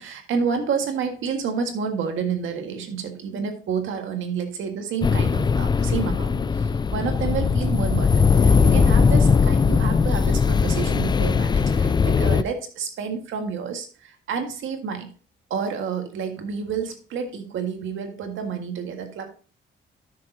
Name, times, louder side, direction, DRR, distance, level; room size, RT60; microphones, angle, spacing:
voice 1, 0.0-15.1 15.5-19.3, right 6 dB, 90° right, 5 dB, 1.7 m, -29 dB
Ghosts in the Wind, 5.0-12.4, left 5 dB, 20° left, 0.3 m, -19 dB
12.5 x 6.6 x 2.8 m, 0.38 s
cardioid pair, 130°, 20 cm